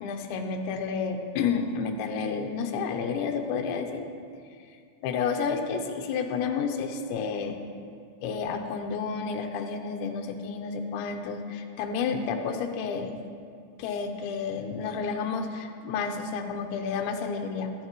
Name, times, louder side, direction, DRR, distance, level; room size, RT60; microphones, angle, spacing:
voice 1, 0.0-4.0 5.0-7.6 8.2-13.3 13.8-17.7, left 5 dB, 80° left, 4 dB, 3.1 m, -30 dB
22.5 x 10.0 x 3.1 m, 2.2 s
omnidirectional pair, 5.4 m